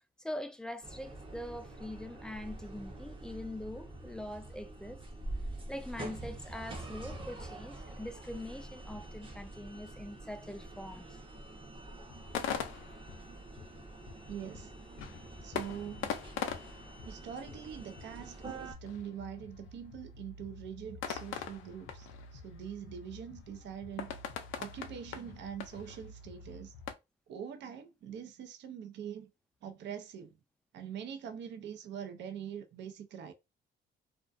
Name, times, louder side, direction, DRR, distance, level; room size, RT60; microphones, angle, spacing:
voice 1, 0.2-5.0 5.7-11.2, left 1 dB, 5° left, 0.3 m, -43 dB
sound 1, 0.8-18.7, right 2 dB, 25° right, 0.7 m, -46 dB
sound 2, 12.1-26.9, left 7 dB, 85° left, 0.4 m, -43 dB
voice 2, 14.3-14.8 15.4-16.1 17.0-24.2 24.6-26.7 27.3-29.3 29.6-30.4 30.7-33.3, right 8 dB, 65° right, 0.5 m, -44 dB
2.3 x 2.2 x 2.5 m
cardioid pair, 90°, 20 cm